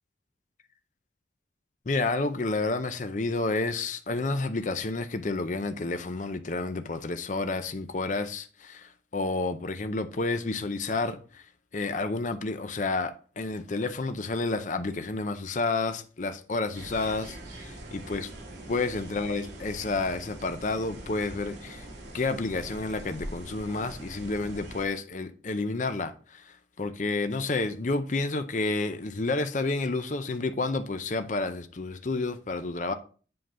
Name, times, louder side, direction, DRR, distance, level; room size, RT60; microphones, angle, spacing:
voice 1, 1.9-11.4 11.7-18.3 18.7-21.8 22.1-26.4 26.8-32.9, left 3 dB, 40° left, 0.5 m, -30 dB
sound 1, 16.7-24.9, right 1 dB, 75° right, 2.0 m, -43 dB
7.7 x 3.8 x 5.5 m
head